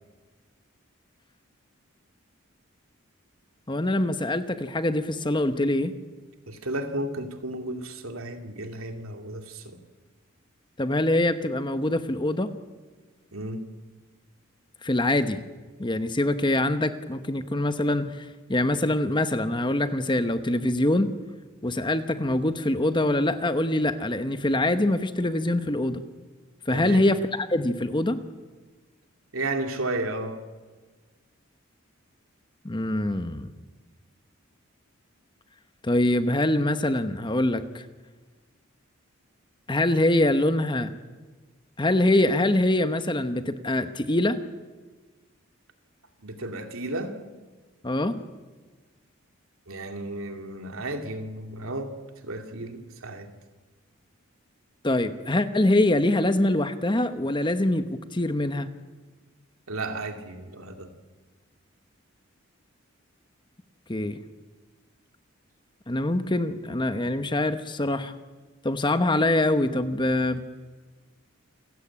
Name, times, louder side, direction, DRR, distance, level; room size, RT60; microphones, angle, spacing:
voice 1, 3.7-5.9 10.8-12.5 14.8-15.4 15.8-21.1 21.6-26.0 26.7-28.2 32.6-33.5 35.8-37.8 39.7-40.9 41.8-44.4 47.8-48.2 54.8-58.7 63.9-64.2 65.9-68.1 68.6-70.5, left 1 dB, 20° left, 10 dB, 1.0 m, -24 dB
voice 2, 6.5-9.8 13.3-13.6 26.7-27.0 29.3-30.4 46.2-47.2 49.7-52.0 52.2-53.3 59.7-60.9, right 2 dB, 80° right, 5 dB, 2.5 m, -33 dB
28.0 x 16.0 x 8.6 m, 1.4 s
head